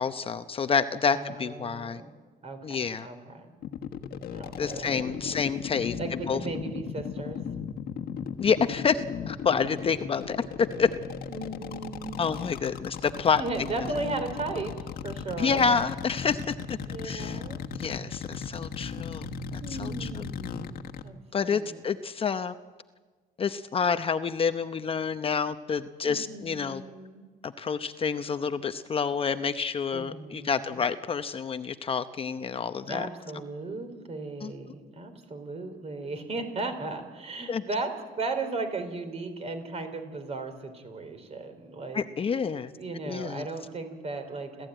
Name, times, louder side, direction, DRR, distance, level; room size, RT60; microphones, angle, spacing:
voice 1, 0.0-2.0 2.6-3.1 4.6-6.0 6.3-6.4 8.4-10.9 12.2-13.4 13.8-13.9 15.4-16.8 17.0-17.4 17.7-20.2 21.3-22.5 23.4-26.8 27.4-33.1 34.4-34.5 37.5-37.6 41.9-42.7 43.0-43.5, left 6 dB, 35° left, 10 dB, 0.8 m, -28 dB
voice 2, 1.1-2.1 2.4-3.5 4.3-5.3 6.0-7.4 9.6-9.7 11.3-12.4 13.4-15.6 16.9-17.6 19.6-21.2 21.4-21.8 26.0-27.3 29.9-30.8 32.9-42.1 42.7-44.7, right 3 dB, 40° right, 7 dB, 4.2 m, -36 dB
sound 1, 3.6-21.1, left 7 dB, 65° left, 1.4 m, -37 dB
29.5 x 14.0 x 9.0 m, 1.4 s
cardioid pair, 110°, 17 cm